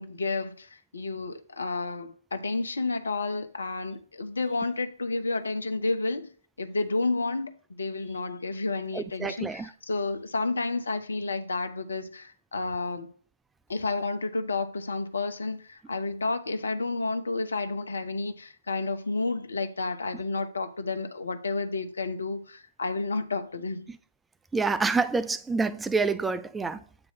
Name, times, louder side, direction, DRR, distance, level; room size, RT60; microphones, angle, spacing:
voice 1, 0.0-6.3 6.6-13.1 13.7-23.9, left 3 dB, 70° left, 1.0 m, -31 dB
voice 2, 8.9-9.7 24.5-26.8, right 4 dB, 5° right, 0.4 m, -27 dB
8.8 x 3.1 x 5.7 m
figure-of-eight pair, 125°, 0 cm